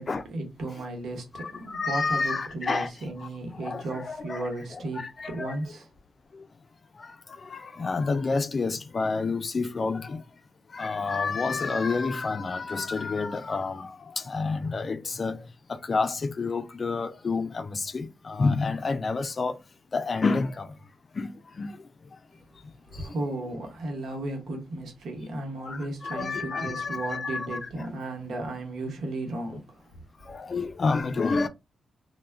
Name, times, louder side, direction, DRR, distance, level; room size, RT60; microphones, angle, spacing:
voice 1, 0.0-5.9 22.9-29.8, right 2 dB, 80° right, 0.9 m, -35 dB
voice 2, 1.3-2.9 3.2-5.6 7.0-10.2 10.7-15.4 15.7-19.6 19.9-20.7 21.1-21.8 22.9-23.1 25.6-27.9 30.2-31.5, left 4 dB, 50° left, 0.3 m, -29 dB
2.2 x 2.1 x 3.3 m
cardioid pair, 60°, 0 cm